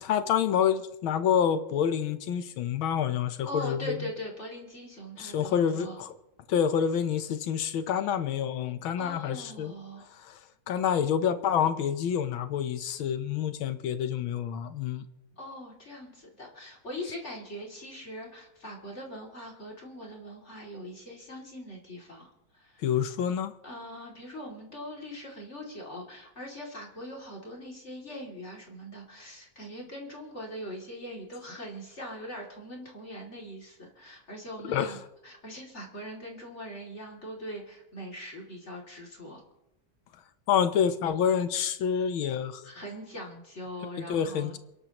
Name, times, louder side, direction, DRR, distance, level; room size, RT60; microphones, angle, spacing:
voice 1, 0.0-4.1 5.2-6.1 6.5-9.7 10.2-10.4 10.7-15.1 22.8-23.5 34.6-34.9 40.5-42.6 44.0-44.6, left 8 dB, 90° left, 11 dB, 1.7 m, -28 dB
voice 2, 3.5-6.0 9.0-10.1 15.3-22.8 23.6-39.4 42.6-44.6, equal, 35° left, -1 dB, 3.0 m, -41 dB
29.0 x 11.5 x 3.0 m, 0.90 s
omnidirectional pair, 2.2 m